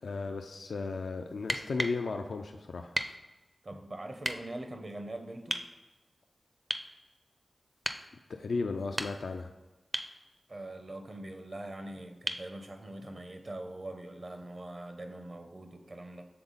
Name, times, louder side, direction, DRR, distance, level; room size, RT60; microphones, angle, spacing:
voice 1, 0.0-3.0 8.3-9.5, left 4 dB, 85° left, 5 dB, 0.3 m, -35 dB
sound 1, 1.4-2.0 2.9-3.2 4.2-4.4 5.5-5.7 6.7-6.9 7.8-8.1 8.8-9.4 9.9-10.2 12.3-12.5 14.3-14.4, right 1 dB, 20° right, 0.4 m, -34 dB
voice 2, 3.6-5.6 10.5-16.3, right 1 dB, 50° right, 5 dB, 0.8 m, -43 dB
6.8 x 3.6 x 3.9 m, 1.1 s
cardioid pair, 55°, 0 cm